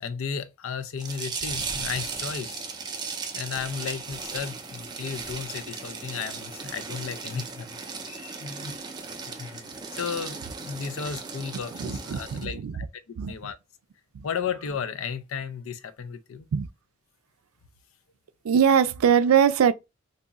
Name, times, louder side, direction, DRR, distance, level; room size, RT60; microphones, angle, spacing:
voice 1, 0.0-2.6 3.3-7.8 8.0-8.8 9.4-13.6 14.2-16.5, left 6 dB, 75° left, 0.5 m, -34 dB
sound 1, 1.0-12.5, right 4 dB, 20° right, 0.4 m, -36 dB
voice 2, 11.7-12.7 13.2-13.3 14.1-14.3 16.5-16.7 18.4-19.7, right 7 dB, 90° right, 0.4 m, -22 dB
2.6 x 2.4 x 3.9 m
head